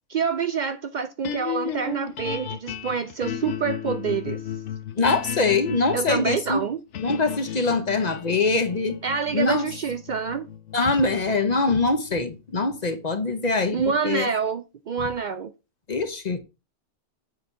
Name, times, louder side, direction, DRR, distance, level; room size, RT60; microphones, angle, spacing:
voice 1, 0.1-4.4 5.9-6.8 9.0-10.5 13.7-15.5, right 6 dB, 60° right, 0.5 m, -27 dB
sound 1, 1.2-13.5, left 9 dB, 75° left, 1.0 m, -35 dB
voice 2, 5.0-6.7 7.0-9.0 9.3-9.7 10.7-14.3 15.9-16.4, left 3 dB, 40° left, 0.8 m, -23 dB
7.8 x 4.1 x 4.5 m
omnidirectional pair, 1.2 m